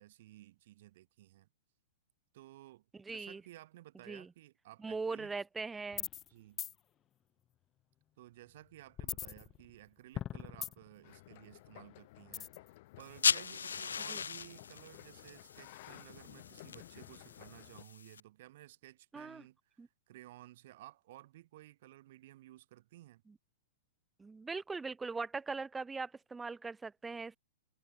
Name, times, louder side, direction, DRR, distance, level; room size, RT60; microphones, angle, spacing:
voice 1, 0.0-1.5 2.3-5.3 6.3-6.6 8.2-23.2, right 15 dB, 50° right, 2.5 m, -56 dB
voice 2, 2.9-3.4 4.1-4.3 4.8-6.1 14.1-14.2 19.1-19.4 19.8-19.9 24.2-27.4, right 4 dB, 10° right, 0.4 m, -40 dB
sound 1, 5.9-6.3 6.6-6.7 9.0-9.8 10.2-11.0 12.3-12.7, left 11 dB, 25° left, 0.9 m, -40 dB
sound 2, 11.0-17.8, left 19 dB, 50° left, 1.1 m, -55 dB
sound 3, 13.0-18.2, left 6 dB, 75° left, 0.7 m, -37 dB
figure-of-eight pair, 105°, 0 cm